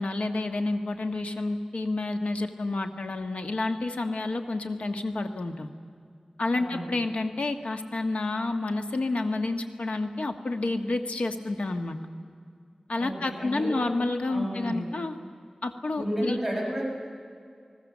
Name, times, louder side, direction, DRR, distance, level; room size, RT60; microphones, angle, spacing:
voice 1, 0.0-5.7 6.4-12.0 12.9-15.1 15.6-16.4, left 2 dB, 90° left, 6 dB, 1.5 m, -29 dB
voice 2, 6.5-7.0 13.0-13.9 14.3-14.9 16.0-16.9, equal, ahead, -2 dB, 5.5 m, -32 dB
30.0 x 19.5 x 7.4 m, 2.2 s
wide cardioid pair, 60°, 2 cm